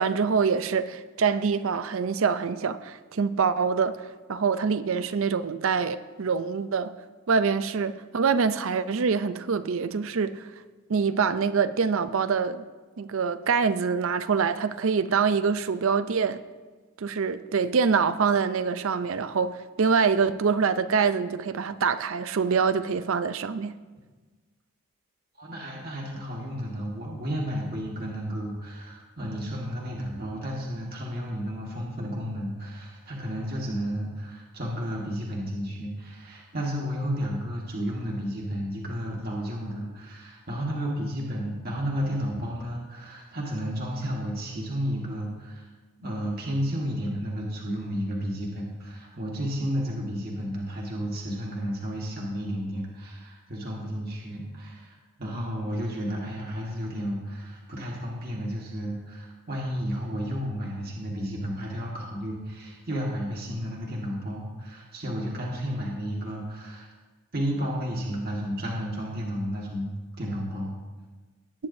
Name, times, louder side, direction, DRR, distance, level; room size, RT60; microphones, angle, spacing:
voice 1, 0.0-4.0 4.3-6.9 7.3-10.5 10.9-12.7 13.0-16.4 17.0-23.7, right 5 dB, 65° right, 13 dB, 0.5 m, -25 dB
voice 2, 25.4-45.7 46.0-66.9 67.3-69.9 70.2-70.7, equal, 45° right, -3 dB, 1.6 m, -32 dB
18.5 x 9.3 x 2.7 m, 1.3 s
head